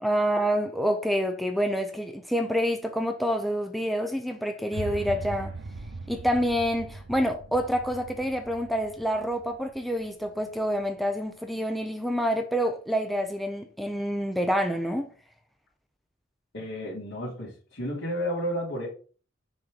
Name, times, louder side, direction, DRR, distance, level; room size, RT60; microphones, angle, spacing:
voice 1, 0.0-5.5 6.1-15.1, equal, ahead, 0.7 m, -27 dB
sound 1, 4.7-10.9, right 3 dB, 85° right, 0.9 m, -40 dB
voice 2, 16.5-18.9, equal, 80° left, 3.6 m, -32 dB
6.3 x 4.4 x 5.2 m
head